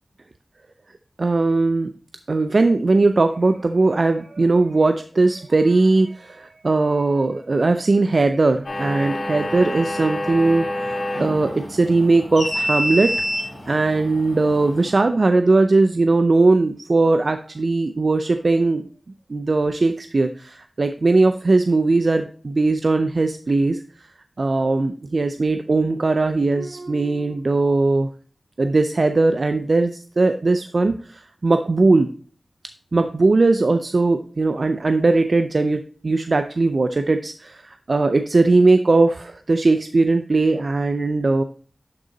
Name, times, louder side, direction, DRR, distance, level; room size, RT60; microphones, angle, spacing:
voice 1, 1.2-1.9 2.3-13.1 13.7-18.9 19.3-24.1 24.4-28.1 28.6-32.1 32.9-41.4, right 3 dB, 60° right, 8 dB, 0.4 m, -19 dB
sound 1, 8.6-15.0, left 1 dB, 85° left, 3.3 m, -27 dB
11.5 x 3.8 x 3.9 m, 0.42 s
wide cardioid pair, 75°, 0 cm